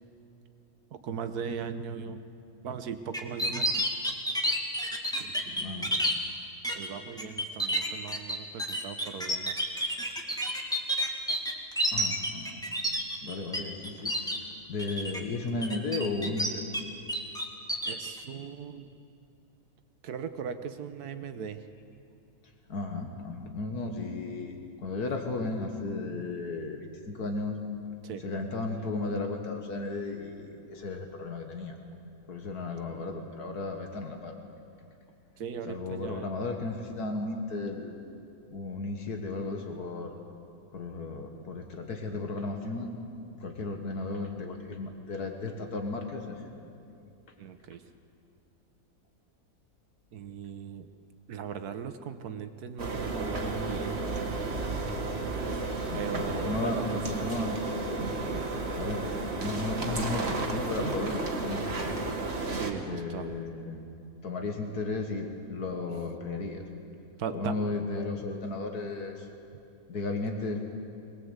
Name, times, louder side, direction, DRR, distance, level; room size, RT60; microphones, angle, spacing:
voice 1, 0.9-2.2 2.6-3.9 5.2-6.0 6.7-9.7 17.8-18.9 20.0-21.6 28.0-28.2 35.4-36.3 47.4-47.8 50.1-50.9 51.3-54.0 55.9-56.8 62.5-63.3 67.2-67.5, right 7 dB, 70° right, 9 dB, 1.5 m, -38 dB
sound 1, 3.1-6.1 6.6-6.9 7.2-13.6 13.8-14.4 14.8-15.2 15.6-16.8 17.1-18.1, equal, ahead, 1.8 m, -29 dB
voice 2, 5.6-5.9 11.9-12.6 13.2-14.2 14.7-16.7 22.7-27.6 28.2-31.8 32.3-34.3 35.7-37.9 38.5-40.2 40.7-43.0 43.4-46.4 55.9-58.1 58.7-62.2 62.8-63.8 64.2-66.7 67.3-69.3 69.9-70.7, left 3 dB, 75° left, 4 dB, 2.0 m, -34 dB
sound 2, 52.8-62.7, right 3 dB, 40° right, 2.0 m, -32 dB
22.5 x 19.5 x 8.1 m, 2.6 s
omnidirectional pair, 1.7 m